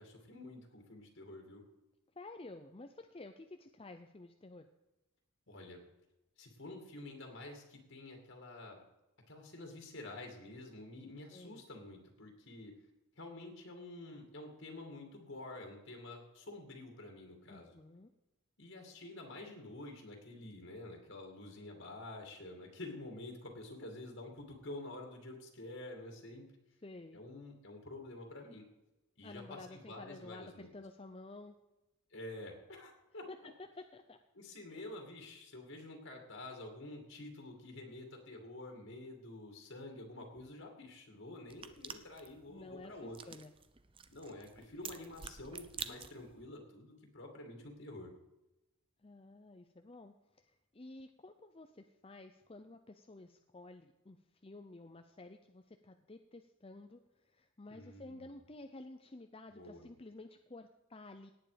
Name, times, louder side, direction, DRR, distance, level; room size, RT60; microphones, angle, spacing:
voice 1, 0.0-1.6 5.5-5.8 6.4-8.8 9.3-12.7 13.2-17.7 18.6-26.4 27.1-28.7 29.2-30.7 32.1-33.5 34.3-43.2 44.1-48.1 57.7-58.3 59.5-59.9, left 2 dB, 60° left, 3 dB, 2.5 m, -49 dB
voice 2, 2.2-4.7 11.3-11.6 17.5-18.1 26.8-27.2 29.2-31.6 33.3-34.2 34.7-34.9 42.5-43.5 49.0-50.1 50.5-54.2 54.4-61.3, left 2 dB, 25° left, 7 dB, 0.6 m, -52 dB
sound 1, 41.5-46.5, right 7 dB, 25° right, 0.7 m, -49 dB
18.0 x 9.2 x 5.1 m, 0.99 s
head